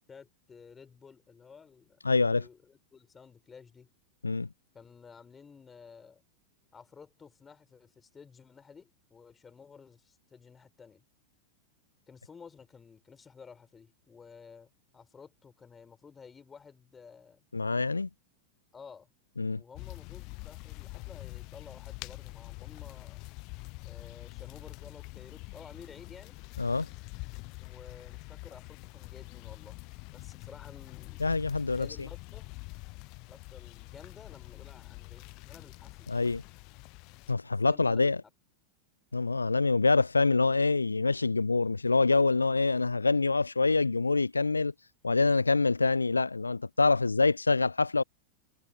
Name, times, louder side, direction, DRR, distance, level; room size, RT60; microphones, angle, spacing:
voice 1, 0.1-2.0 2.4-3.9 4.7-6.2 6.7-11.0 12.1-17.4 18.7-19.1 19.5-23.2 23.8-26.4 27.6-29.8 30.1-31.2 31.7-32.5 33.3-36.1 37.4-38.1, left 6 dB, 15° left, 4.7 m, -53 dB
voice 2, 2.0-2.5 4.2-4.5 17.5-18.1 19.4-19.6 26.6-26.9 31.2-31.9 36.1-36.4 37.3-38.2 39.1-44.7 45.0-48.0, left 3 dB, 80° left, 0.5 m, -25 dB
sound 1, 19.7-37.3, left 28 dB, 45° left, 0.7 m, -45 dB
figure-of-eight pair, 90°, 0 cm